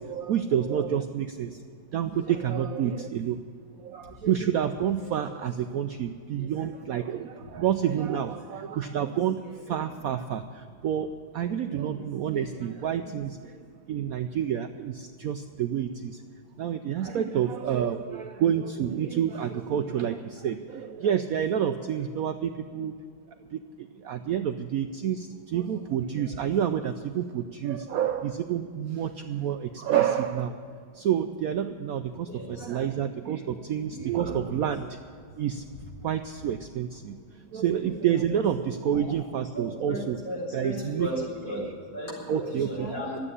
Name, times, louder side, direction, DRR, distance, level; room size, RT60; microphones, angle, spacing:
voice 1, 0.0-1.6 1.9-3.4 3.8-13.6 13.9-16.2 16.6-22.9 23.5-30.6 31.0-35.0 35.4-35.6 36.0-37.2 37.5-40.2 40.5-41.3 42.3-42.9, right 9 dB, 75° right, 8 dB, 0.8 m, -29 dB
voice 2, 32.3-32.7 34.1-34.6 38.8-41.7 41.9-43.2, equal, 65° left, -5 dB, 4.8 m, -36 dB
12.5 x 8.8 x 9.7 m, 2.4 s
omnidirectional pair, 2.0 m